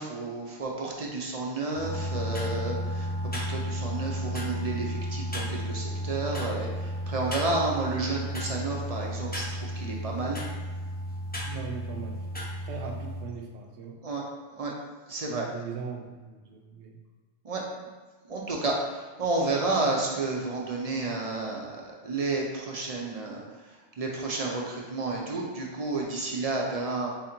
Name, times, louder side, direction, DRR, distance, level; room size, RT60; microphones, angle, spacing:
voice 1, 0.0-10.4 14.0-14.2 14.6-14.7 15.1-15.5 17.4-17.6 18.3-23.4 24.0-27.1, right 3 dB, 40° right, -1 dB, 0.6 m, -31 dB
sound 1, 1.8-13.2, equal, 10° left, 0.5 m, -33 dB
voice 2, 11.4-14.0 15.3-17.0, right 5 dB, 85° right, 3 dB, 0.9 m, -40 dB
4.2 x 2.5 x 4.3 m, 1.3 s
omnidirectional pair, 1.1 m